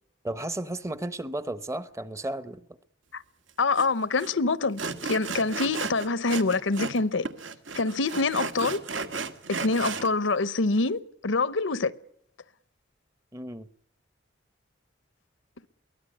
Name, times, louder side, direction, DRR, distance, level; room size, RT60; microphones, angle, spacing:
voice 1, 0.2-2.7 13.3-13.7, right 1 dB, 15° right, 0.8 m, -34 dB
voice 2, 3.6-7.2 7.8-8.8 9.6-11.9, left 3 dB, 80° left, 0.9 m, -25 dB
Sawing, 3.8-3.9 4.2-4.3 4.8-7.0 7.3-10.1, right 4 dB, 80° right, 1.7 m, -34 dB
23.0 x 17.0 x 8.5 m
head